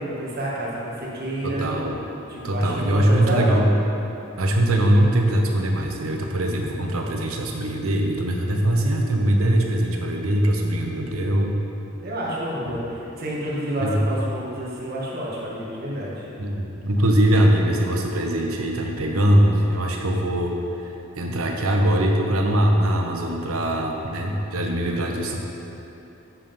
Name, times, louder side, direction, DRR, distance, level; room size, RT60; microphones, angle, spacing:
voice 1, 0.0-1.7 2.3-3.6 12.0-12.8 13.2-16.2, right 1 dB, 50° right, -5 dB, 1.8 m, -29 dB
voice 2, 1.4-2.1 2.4-3.7 4.4-11.5 12.7-13.0 13.8-14.1 16.4-20.9 21.2-25.4, right 1 dB, 85° right, 1 dB, 1.0 m, -22 dB
8.3 x 5.6 x 5.4 m, 2.9 s
head